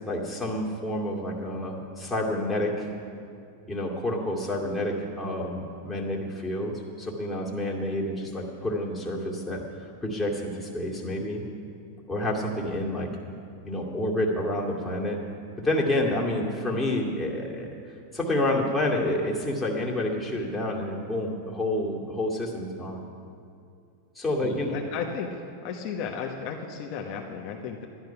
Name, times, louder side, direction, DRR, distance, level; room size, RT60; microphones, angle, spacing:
voice 1, 0.0-2.9 3.7-9.6 10.0-11.4 12.1-13.1 13.6-15.2 15.6-17.7 18.1-23.0 24.2-24.8, left 1 dB, 10° left, -4 dB, 2.3 m, -29 dB
voice 2, 24.4-25.3 25.6-27.9, left 6 dB, 50° left, 1 dB, 1.1 m, -34 dB
12.0 x 11.0 x 5.8 m, 2.5 s
hypercardioid pair, 115°, 0 cm